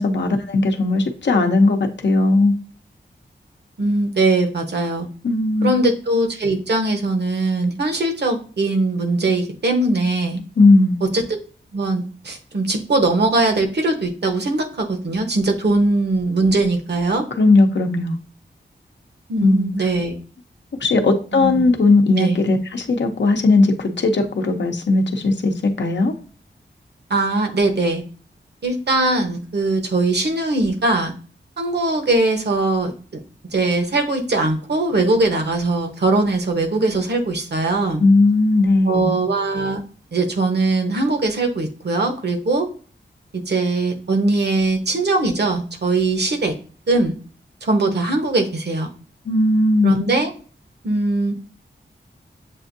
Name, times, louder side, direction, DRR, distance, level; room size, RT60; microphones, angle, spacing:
voice 1, 0.0-2.5 5.2-5.7 10.6-11.0 17.4-18.2 19.4-19.7 20.8-26.1 38.0-39.1 49.3-50.0, left 2 dB, 70° left, 0.7 m, -17 dB
voice 2, 3.8-5.1 5.6-10.4 11.1-11.4 11.7-17.2 19.3-20.1 21.3-21.7 22.2-22.4 27.1-28.0 28.6-31.1 31.6-32.9 33.5-38.0 38.8-39.8 40.1-42.7 43.5-46.5 46.9-47.1 47.6-48.9 49.8-50.3 50.8-51.3, right 2 dB, 65° right, 1.0 m, -20 dB
7.6 x 2.6 x 2.6 m
wide cardioid pair, 90°, 19 cm